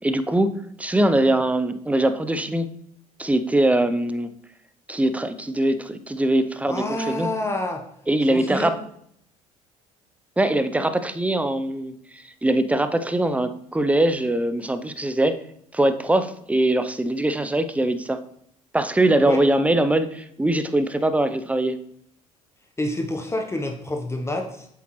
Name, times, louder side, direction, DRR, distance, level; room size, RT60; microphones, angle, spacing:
voice 1, 0.0-2.7 3.2-4.3 4.9-7.3 8.1-8.8 10.4-15.4 15.7-18.2 18.7-21.8, right 1 dB, 5° right, 11 dB, 0.7 m, -22 dB
voice 2, 6.7-7.8 8.3-8.7 19.3-19.4 22.8-24.7, left 1 dB, 15° left, 3 dB, 1.0 m, -27 dB
8.4 x 6.9 x 3.2 m, 0.70 s
hypercardioid pair, 60°, 19 cm